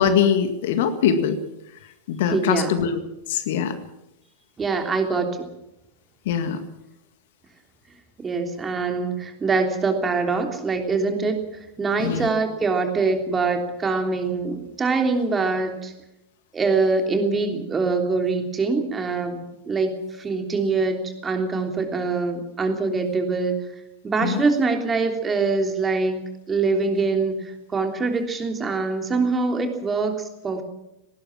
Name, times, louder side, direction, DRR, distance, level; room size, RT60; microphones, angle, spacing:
voice 1, 0.0-1.4 1.8-3.0 3.3-3.8 6.3-6.6 12.0-12.3 24.2-24.5, left 7 dB, 55° left, 9 dB, 1.9 m, -22 dB
voice 2, 2.3-2.7 4.6-5.5 8.2-15.9 16.5-23.6 24.0-26.2 26.5-30.6, right 4 dB, 15° right, 4 dB, 3.3 m, -24 dB
19.0 x 18.5 x 7.4 m, 0.89 s
figure-of-eight pair, 90°, 0 cm